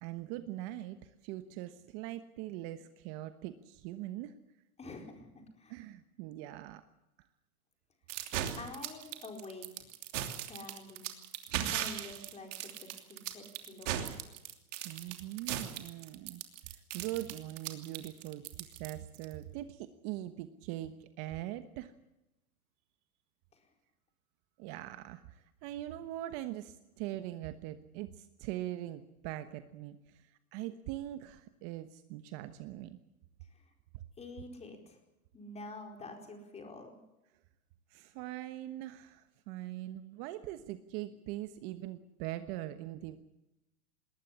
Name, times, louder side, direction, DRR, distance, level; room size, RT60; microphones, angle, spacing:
voice 1, 0.0-4.3 5.7-6.8 14.8-16.4 16.9-21.9 24.6-33.0 33.9-34.0 37.9-43.2, right 14 dB, 40° right, 10 dB, 1.3 m, -42 dB
voice 2, 4.8-5.7 8.5-9.9 10.4-11.1 11.7-14.0 23.5-23.6 33.5-33.6 34.2-35.0 35.3-37.0, left 2 dB, 15° left, 3 dB, 4.6 m, -47 dB
sound 1, 8.1-19.3, right 11 dB, 55° right, 3.0 m, -38 dB
20.5 x 18.5 x 8.6 m, 0.95 s
hypercardioid pair, 135°, 44 cm